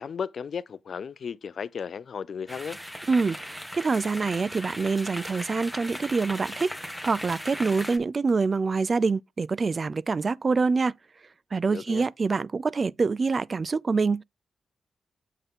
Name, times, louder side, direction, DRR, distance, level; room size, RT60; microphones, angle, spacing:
voice 1, 0.0-2.8 11.7-12.1, left 6 dB, 65° left, 0.4 m, -35 dB
sound 1, 2.5-8.0, equal, 5° right, 1.4 m, -38 dB
voice 2, 3.1-11.0 11.5-14.2, right 4 dB, 45° right, 0.3 m, -26 dB
7.4 x 5.4 x 3.6 m
supercardioid pair, 50°, 0 cm